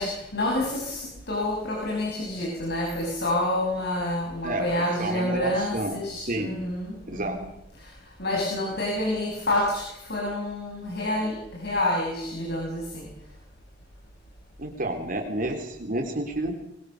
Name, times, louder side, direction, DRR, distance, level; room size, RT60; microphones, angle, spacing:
voice 1, 0.0-7.5 7.8-7.9 8.2-13.1, left 1 dB, 60° left, -1 dB, 6.4 m, -28 dB
voice 2, 4.4-6.6 7.1-7.4 14.6-16.5, right 1 dB, 45° right, 3 dB, 3.6 m, -30 dB
23.5 x 22.5 x 6.7 m, 0.83 s
head